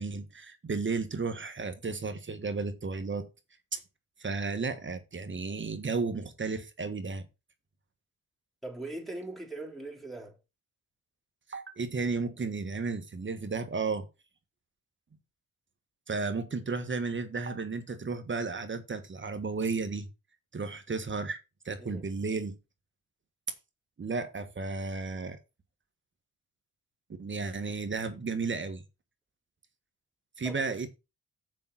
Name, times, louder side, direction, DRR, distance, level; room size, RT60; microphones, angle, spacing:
voice 1, 0.0-3.3 3.7-3.8 4.2-7.3 11.5-14.1 16.1-20.1 20.5-21.4 21.6-22.5 24.0-25.4 27.2-28.8 30.4-30.9, right 4 dB, 35° right, 1.6 m, -33 dB
voice 2, 8.6-10.4 21.8-22.0 30.4-30.6, right 2 dB, ahead, 4.1 m, -40 dB
7.2 x 5.7 x 5.7 m
cardioid pair, 75°, 33 cm